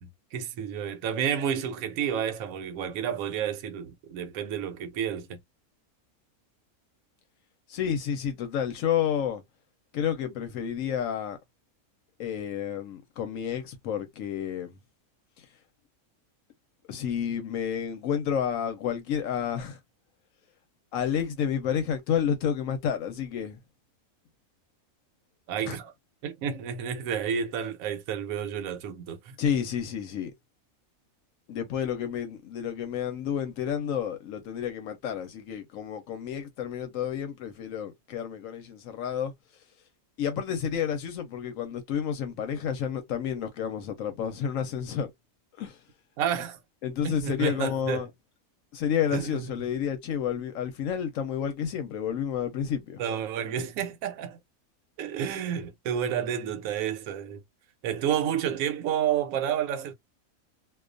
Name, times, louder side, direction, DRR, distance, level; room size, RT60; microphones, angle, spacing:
voice 1, 0.0-5.4 25.5-25.9 26.2-29.2 46.2-46.6 47.0-48.0 49.1-49.5 53.0-54.4 55.0-57.4 57.8-59.9, right 8 dB, 75° right, 1.0 m, -30 dB
voice 2, 7.7-9.4 9.9-11.4 12.2-14.7 16.9-19.8 20.9-23.6 25.7-25.8 29.4-30.3 31.5-39.3 40.2-45.1 45.6-45.8 46.8-48.1 48.7-53.0, left 8 dB, 70° left, 0.9 m, -30 dB
2.4 x 2.3 x 2.4 m
omnidirectional pair, 1.5 m